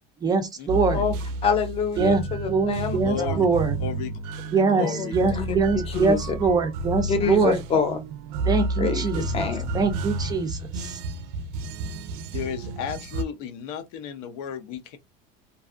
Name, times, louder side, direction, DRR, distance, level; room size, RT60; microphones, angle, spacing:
voice 1, 0.2-1.0 2.0-3.8 4.5-7.6 8.5-9.2 9.7-11.0, right 4 dB, 20° right, 0.3 m, -23 dB
sound 1, 0.7-13.2, right 2 dB, 85° right, 0.4 m, -31 dB
voice 2, 1.4-3.4 4.8-5.5 5.7-6.4 7.1-8.0 8.8-9.8, left 5 dB, 30° left, 0.7 m, -26 dB
voice 3, 3.0-3.5 3.8-4.1 4.5-5.2 5.5-5.6 12.3-15.0, left 7 dB, 85° left, 0.6 m, -34 dB
2.6 x 2.3 x 2.4 m
cardioid pair, 150°, 20 cm